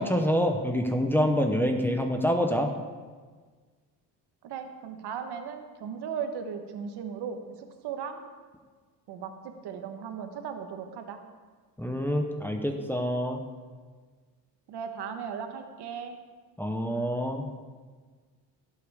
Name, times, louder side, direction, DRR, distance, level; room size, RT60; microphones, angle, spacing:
voice 1, 0.0-2.7 11.8-13.4 16.6-17.5, equal, 5° left, 3 dB, 0.8 m, -26 dB
voice 2, 4.4-8.3 9.1-11.2 14.7-16.2, right 7 dB, 65° right, 6 dB, 1.3 m, -37 dB
16.5 x 8.3 x 3.6 m, 1.5 s
cardioid pair, 115°, 42 cm